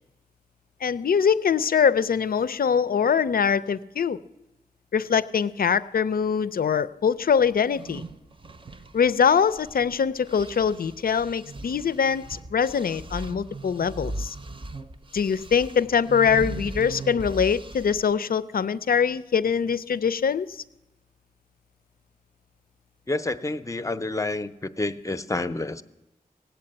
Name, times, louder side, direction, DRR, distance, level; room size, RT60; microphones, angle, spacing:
voice 1, 0.8-4.2 4.9-8.0 8.9-14.4 15.1-20.6, left 7 dB, 70° left, 16 dB, 0.5 m, -23 dB
sound 1, 7.6-9.9 10.2-18.1, right 2 dB, 35° right, 0.6 m, -38 dB
voice 2, 23.1-25.8, left 2 dB, 20° left, 13 dB, 0.6 m, -29 dB
17.5 x 8.2 x 8.7 m, 1.0 s
wide cardioid pair, 90°, 16 cm